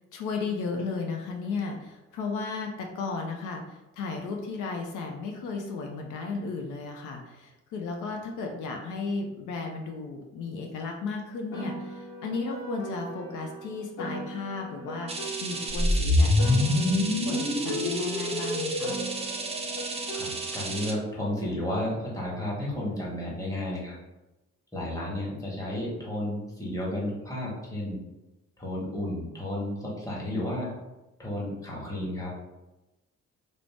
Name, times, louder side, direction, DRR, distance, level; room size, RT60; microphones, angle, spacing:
voice 1, 0.0-19.0, left 4 dB, 80° left, 2 dB, 0.5 m, -34 dB
Piano, 11.5-16.0 16.4-21.0, right 1 dB, 60° left, 1.2 m, -39 dB
sound 1, 15.1-20.9, right 3 dB, 20° right, 0.4 m, -35 dB
sound 2, 15.7-20.0, left 2 dB, 30° left, 1.2 m, -25 dB
voice 2, 20.1-23.9 24.7-28.0 28.6-30.7 31.2-32.3, left 1 dB, 10° left, -5 dB, 1.1 m, -32 dB
2.5 x 2.0 x 3.3 m, 0.99 s
cardioid pair, 90°, 30 cm